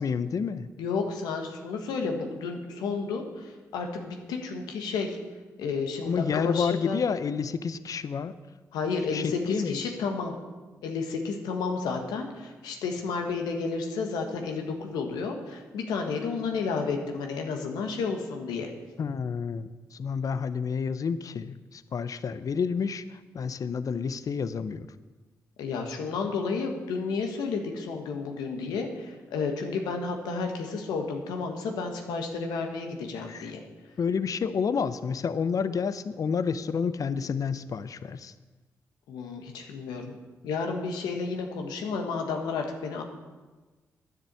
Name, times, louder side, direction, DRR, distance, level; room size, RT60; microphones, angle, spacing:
voice 1, 0.0-0.7 6.1-8.3 9.1-9.8 19.0-24.9 33.3-33.5 34.0-38.3, left 6 dB, 60° left, 14 dB, 0.6 m, -29 dB
voice 2, 0.8-5.2 5.6-7.0 8.7-10.3 10.8-18.7 25.6-33.6 39.1-40.2 40.4-43.0, left 4 dB, 90° left, 3 dB, 1.5 m, -31 dB
10.5 x 6.8 x 8.2 m, 1.3 s
supercardioid pair, 45°, 7 cm